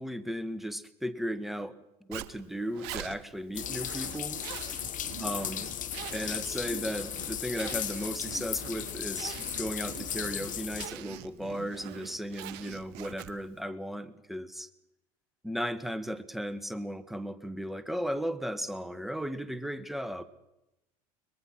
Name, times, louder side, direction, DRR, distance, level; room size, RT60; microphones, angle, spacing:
voice 1, 0.0-1.8 2.1-4.4 5.2-5.7 6.1-14.7 15.4-20.2, equal, ahead, 13 dB, 1.5 m, -36 dB
Zipper (clothing), 2.1-13.6, right 14 dB, 60° right, 1.2 m, -44 dB
sound 1, 3.5-10.9, left 10 dB, 45° left, 1.5 m, -36 dB
23.0 x 20.5 x 6.0 m, 0.92 s
hypercardioid pair, 75°, 19 cm